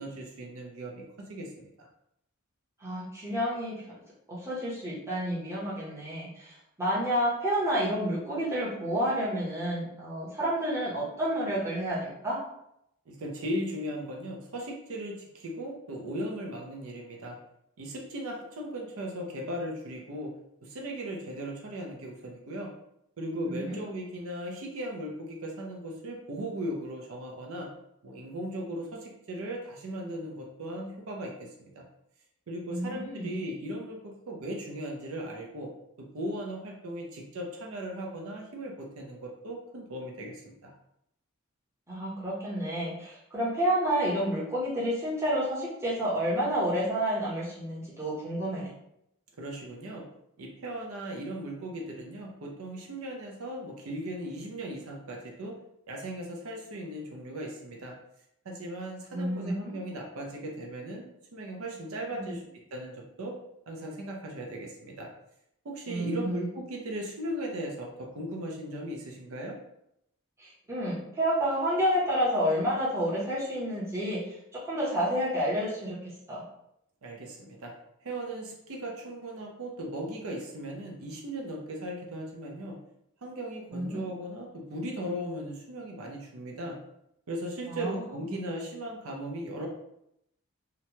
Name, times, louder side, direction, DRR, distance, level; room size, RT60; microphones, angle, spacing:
voice 1, 0.0-1.9 13.1-17.4 17.8-20.3 20.6-22.7 23.2-27.7 28.0-31.8 32.5-35.7 36.1-40.7 49.4-50.0 50.4-55.6 55.9-58.0 58.4-61.1 61.3-63.4 63.7-65.1 65.6-69.6 77.0-77.7 78.0-82.8 83.2-86.8 87.3-89.7, right 1 dB, 75° right, 0 dB, 0.5 m, -37 dB
voice 2, 2.8-3.8 4.3-12.4 23.5-23.8 32.7-33.3 41.9-48.7 59.1-59.8 62.1-62.3 65.9-66.4 70.4-74.2 74.5-76.0 76.3-76.4 83.7-84.0 87.7-88.0 88.3-88.4, equal, 15° right, -7 dB, 0.7 m, -30 dB
2.9 x 2.1 x 2.8 m, 0.78 s
head